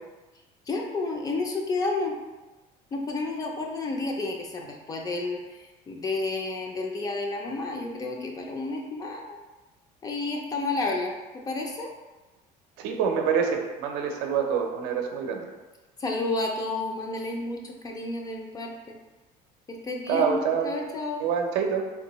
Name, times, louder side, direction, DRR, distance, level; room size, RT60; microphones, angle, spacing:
voice 1, 0.7-2.2 2.9-9.4 10.0-11.9 16.0-18.9 19.7-21.3, left 3 dB, 20° left, 2 dB, 0.4 m, -31 dB
voice 2, 12.8-15.5 20.1-20.7 21.2-21.9, right 6 dB, 80° right, 3 dB, 0.5 m, -26 dB
3.5 x 2.7 x 3.0 m, 1.2 s
cardioid pair, 155°, 17 cm